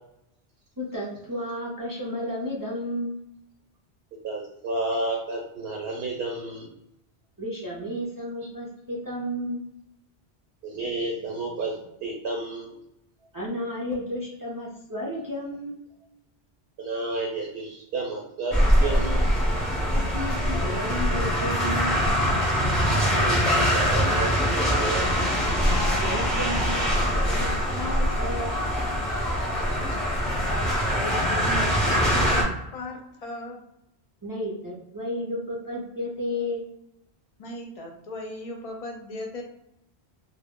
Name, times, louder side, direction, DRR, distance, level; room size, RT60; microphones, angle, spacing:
voice 1, 0.8-3.2 7.4-9.6 13.3-15.8 19.9-21.9 26.0-28.6 34.2-36.7, left 1 dB, 35° right, -5 dB, 0.3 m, -32 dB
voice 2, 4.2-6.7 10.6-11.7 12.0-12.7 16.8-19.3 23.1-25.1 25.7-25.9, right 2 dB, 70° right, -1 dB, 0.8 m, -31 dB
sound 1, 18.5-32.4, equal, ahead, 0.6 m, -23 dB
voice 3, 30.9-33.6 37.4-39.4, left 1 dB, 50° left, 2 dB, 0.4 m, -37 dB
2.1 x 2.0 x 3.5 m, 0.84 s
omnidirectional pair, 1.1 m